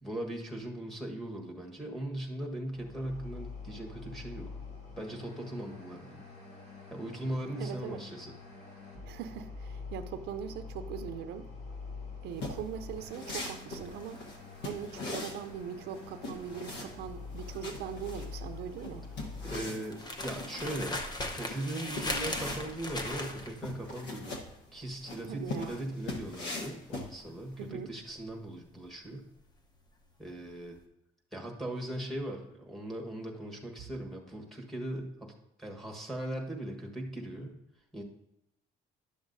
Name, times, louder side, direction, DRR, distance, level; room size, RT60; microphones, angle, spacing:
voice 1, 0.0-4.5 5.0-6.2 6.9-8.3 19.4-21.0 21.3-24.4 24.7-29.2 30.2-30.8 31.3-35.3 35.6-37.5 37.9-38.0, right 1 dB, ahead, 1.3 m, -39 dB
sound 1, 2.7-19.7, left 4 dB, 60° left, 2.8 m, -46 dB
voice 2, 7.6-8.0 9.0-11.5 12.2-14.2 14.6-19.1 25.2-25.8 27.6-27.9, right 8 dB, 75° right, 0.5 m, -41 dB
sound 2, 12.3-27.6, left 2 dB, 90° left, 1.2 m, -42 dB
sound 3, 13.9-30.1 30.4-30.7, left 1 dB, 25° left, 0.8 m, -40 dB
11.0 x 7.1 x 2.6 m
cardioid pair, 110°, 17 cm